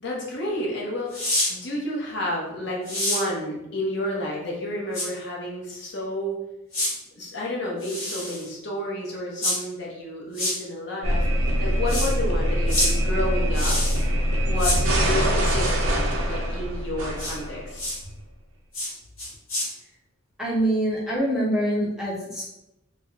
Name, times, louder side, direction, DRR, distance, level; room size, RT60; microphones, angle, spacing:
voice 1, 0.0-1.2 1.5-6.4 7.1-13.8 14.5-17.9, left 1 dB, 55° left, -3 dB, 0.8 m, -31 dB
sound 1, 1.1-1.5 2.8-3.2 4.9-5.1 6.7-6.9 7.8-8.4 9.4-9.6 10.3-10.5 11.9-12.1 12.7-12.9 13.5-14.0 14.6-14.8 17.2-17.3 17.8-18.0 18.7-18.9 19.2-19.7, left 1 dB, 80° left, 1.4 m, -26 dB
sound 2, 11.0-17.9, equal, 85° right, 0.6 m, -23 dB
voice 2, 20.4-22.5, right 1 dB, ahead, -6 dB, 0.5 m, -25 dB
2.5 x 2.1 x 3.7 m, 0.91 s
head